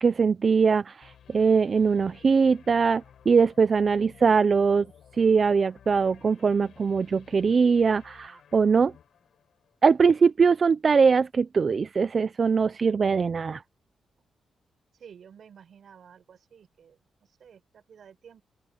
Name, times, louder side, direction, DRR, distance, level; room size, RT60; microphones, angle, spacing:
voice 1, 0.0-4.9 5.1-8.9 9.8-13.6, right 5 dB, 35° right, 0.5 m, -22 dB
sound 1, 1.0-10.1, left 8 dB, 65° left, 7.3 m, -55 dB
voice 2, 15.0-17.0 17.4-18.4, right 7 dB, 55° right, 4.5 m, -51 dB
open air
wide cardioid pair, 155°, 0 cm